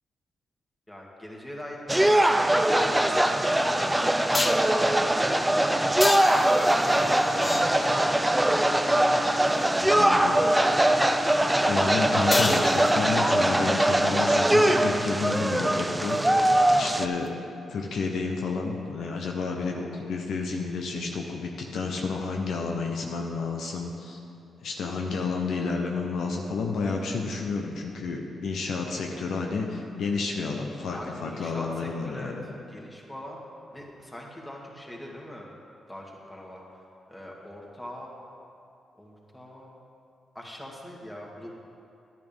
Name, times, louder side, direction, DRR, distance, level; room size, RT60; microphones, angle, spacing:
voice 1, 0.9-4.9 5.6-8.3 9.0-10.0 30.9-33.4 33.7-35.5 35.9-36.8 37.1-38.1 38.9-39.8 40.3-41.5, left 1 dB, 15° left, -2 dB, 2.3 m, -43 dB
sound 1, 1.9-17.1, right 1 dB, 10° right, 0.6 m, -22 dB
sound 2, 3.3-3.4 4.3-4.8 6.0-8.2 12.3-13.4 17.3-17.4, left 2 dB, 30° left, 0.7 m, -29 dB
sound 3, 4.5-14.7, left 3 dB, 60° left, 2.3 m, -41 dB
voice 2, 9.8-10.4 11.7-17.3 17.7-24.2 24.6-32.4, left 4 dB, 75° left, 1 dB, 0.8 m, -30 dB
10.5 x 10.5 x 3.6 m, 2.6 s
supercardioid pair, 50°, 0 cm